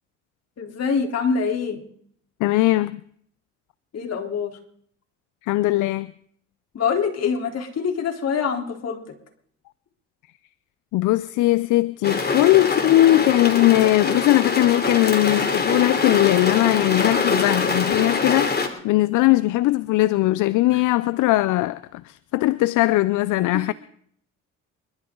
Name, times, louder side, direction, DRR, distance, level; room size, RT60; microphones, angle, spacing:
voice 1, 0.6-1.8 3.9-4.5 6.7-9.0 20.7-20.8 23.5-23.6, left 6 dB, 55° left, 3.8 m, -25 dB
voice 2, 2.4-3.0 5.4-6.1 10.9-23.7, left 17 dB, 75° left, 0.6 m, -19 dB
sound 1, 12.0-18.7, left 4 dB, 30° left, 3.1 m, -24 dB
28.0 x 13.0 x 3.9 m
supercardioid pair, 75°, 31 cm